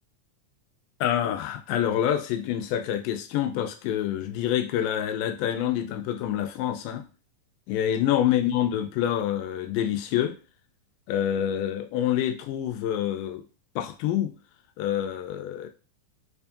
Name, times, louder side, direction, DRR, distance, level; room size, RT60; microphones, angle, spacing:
voice 1, 1.0-7.1 7.7-10.4 11.1-13.4 13.8-14.3 14.8-15.7, left 10 dB, 90° left, 2.1 m, -27 dB
5.0 x 2.4 x 2.6 m
omnidirectional pair, 3.7 m